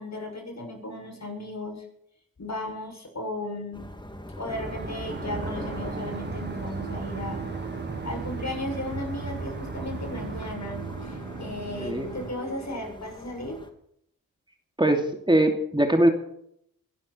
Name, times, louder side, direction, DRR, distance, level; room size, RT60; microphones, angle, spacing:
voice 1, 0.0-1.8 2.4-3.9 4.4-7.4 8.0-13.6, left 1 dB, 45° left, 3 dB, 7.3 m, -35 dB
sound 1, 3.7-13.7, left 1 dB, 10° left, 3.0 m, -42 dB
sound 2, 4.5-10.6, right 4 dB, 30° right, 1.4 m, -38 dB
sound 3, 5.0-12.3, right 5 dB, 55° right, 2.6 m, -38 dB
voice 2, 14.8-16.1, right 1 dB, 15° right, 3 dB, 2.8 m, -21 dB
23.5 x 12.0 x 4.6 m, 0.71 s
cardioid pair, 55°, 37 cm